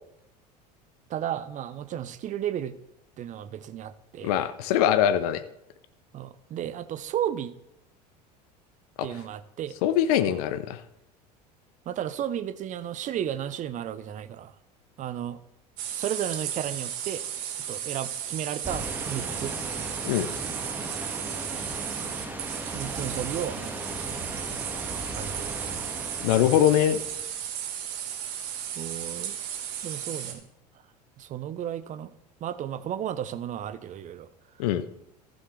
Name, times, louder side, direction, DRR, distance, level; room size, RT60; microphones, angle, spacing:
voice 1, 1.1-2.7 3.2-4.5 6.1-7.5 9.0-9.7 10.3-10.4 11.9-14.5 15.0-15.4 15.9-17.2 17.7-19.5 22.7-23.8 25.1-25.7 28.8-29.4 29.8-30.4 31.2-32.1 32.4-34.3, right 10 dB, 35° right, 14 dB, 0.7 m, -33 dB
voice 2, 4.2-5.4 9.0-9.1 9.8-10.8 20.0-20.3 26.2-27.0 34.6-34.8, left 10 dB, 60° left, 12 dB, 0.7 m, -22 dB
sound 1, 15.8-30.3, right 9 dB, 60° right, 1.4 m, -35 dB
sound 2, 18.6-27.3, right 1 dB, 10° right, 1.8 m, -37 dB
14.5 x 6.4 x 3.3 m, 0.84 s
hypercardioid pair, 75°, 21 cm